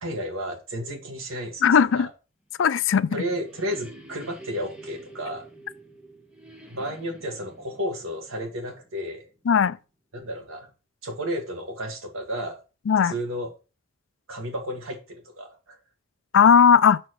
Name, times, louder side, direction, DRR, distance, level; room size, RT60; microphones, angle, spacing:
voice 1, 0.0-1.7 1.9-2.1 3.1-5.5 6.7-9.3 10.1-10.7 11.0-12.6 13.0-13.5 14.3-15.8, equal, 80° right, 1.9 m, -32 dB
voice 2, 1.6-2.1 2.6-3.2 9.5-9.8 12.9-13.1 16.3-17.0, left 7 dB, 65° left, 0.4 m, -17 dB
sound 1, 2.7-9.4, right 2 dB, 5° right, 1.2 m, -48 dB
6.3 x 4.5 x 5.9 m
head